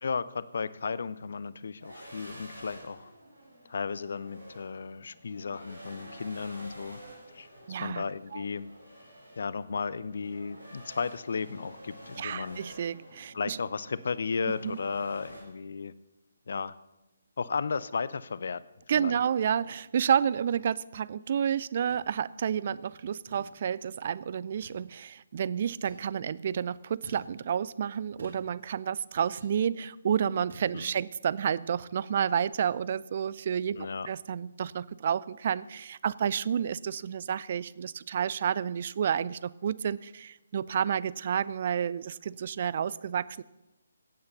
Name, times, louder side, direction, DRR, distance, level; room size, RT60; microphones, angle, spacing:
voice 1, 0.0-3.1 3.7-7.0 7.3-7.5 7.8-8.7 9.4-12.6 13.3-15.9 16.5-16.8 17.4-18.6 18.9-19.2 30.7-30.9 33.8-34.1, left 5 dB, 50° left, 17 dB, 0.6 m, -34 dB
sound 1, 1.8-15.4, right 1 dB, 90° right, 6.5 m, -49 dB
voice 2, 7.7-8.0 8.3-8.4 12.2-13.6 14.6-14.8 18.9-43.4, right 8 dB, 40° right, 21 dB, 0.4 m, -30 dB
sound 2, 21.9-22.0 23.3-23.5 24.6-24.8 25.8-26.1 27.0-27.3 28.2-28.5 29.4-29.6 30.5-30.7, right 1 dB, 60° right, 4.3 m, -48 dB
17.0 x 8.8 x 6.7 m, 1.0 s
figure-of-eight pair, 140°, 0 cm